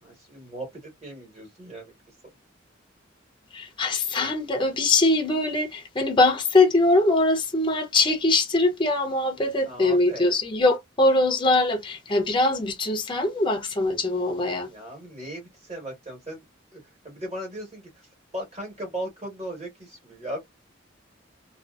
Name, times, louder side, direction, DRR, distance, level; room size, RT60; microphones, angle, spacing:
voice 1, 0.0-1.9 9.6-10.3 14.6-16.4 16.7-18.1 18.3-20.4, right 1 dB, 35° right, 1.3 m, -37 dB
voice 2, 3.5-14.7, left 2 dB, 25° left, 0.5 m, -22 dB
2.5 x 2.3 x 2.3 m
head